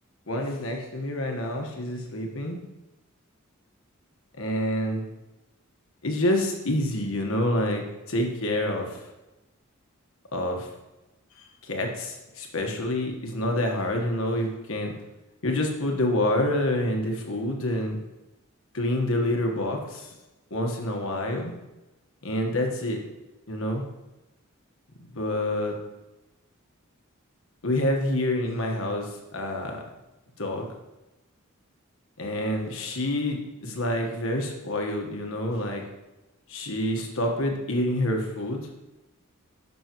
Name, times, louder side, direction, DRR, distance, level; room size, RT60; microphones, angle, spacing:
voice 1, 0.3-2.6 4.4-5.1 6.0-9.0 10.3-10.7 11.6-14.9 15.4-18.0 18.7-20.1 20.5-21.5 22.2-23.0 23.5-23.8 25.1-25.8 27.6-29.9 30.4-30.7 32.2-35.8 36.5-38.7, left 1 dB, 70° left, 2 dB, 1.4 m, -27 dB
11.0 x 6.2 x 3.1 m, 1.0 s
head